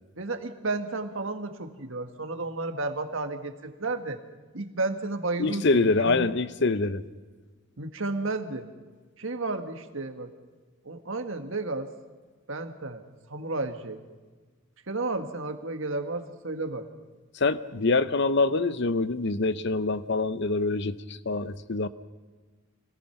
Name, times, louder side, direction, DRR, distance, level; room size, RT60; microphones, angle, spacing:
voice 1, 0.2-4.2 4.5-6.3 7.8-8.7 9.2-10.3 10.8-11.9 12.5-14.0 14.9-16.9, right 2 dB, 65° right, 6 dB, 1.7 m, -32 dB
voice 2, 5.4-7.0 17.3-21.9, left 3 dB, 55° left, 14 dB, 0.8 m, -25 dB
25.5 x 18.0 x 5.9 m, 1.4 s
head